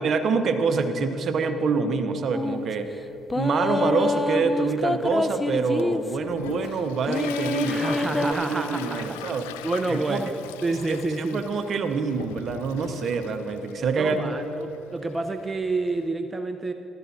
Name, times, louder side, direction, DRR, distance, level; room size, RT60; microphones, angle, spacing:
voice 1, 0.0-2.9 3.3-9.5 9.9-10.2 10.9-14.3, right 4 dB, 55° right, 7 dB, 0.9 m, -26 dB
sound 1, 2.3-2.6 3.3-6.3 7.0-8.3, left 2 dB, 20° left, 0.4 m, -26 dB
Toilet flush, 5.8-16.0, left 10 dB, 85° left, 0.3 m, -40 dB
voice 2, 7.7-9.2 9.6-10.3 10.6-11.6 14.0-16.7, right 3 dB, 25° right, 7 dB, 0.6 m, -29 dB
15.0 x 13.0 x 2.8 m, 3.0 s
hypercardioid pair, 55°, 0 cm